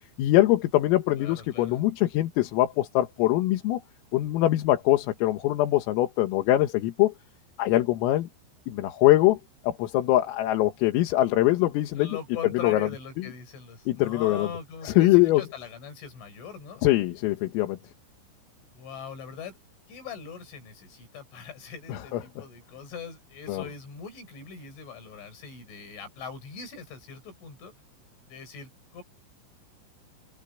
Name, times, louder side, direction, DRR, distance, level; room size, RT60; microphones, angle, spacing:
voice 1, 0.2-3.8 4.1-7.1 7.6-8.3 8.7-9.4 9.6-12.1 12.6-12.8 13.9-14.5 14.8-15.4 16.8-17.8 21.9-22.2 23.5-23.6, left 15 dB, 85° left, 4.2 m, -23 dB
voice 2, 1.2-1.8 12.0-16.8 18.7-19.6 19.9-27.7 28.3-29.0, left 6 dB, 65° left, 8.7 m, -41 dB
open air
omnidirectional pair, 5.9 m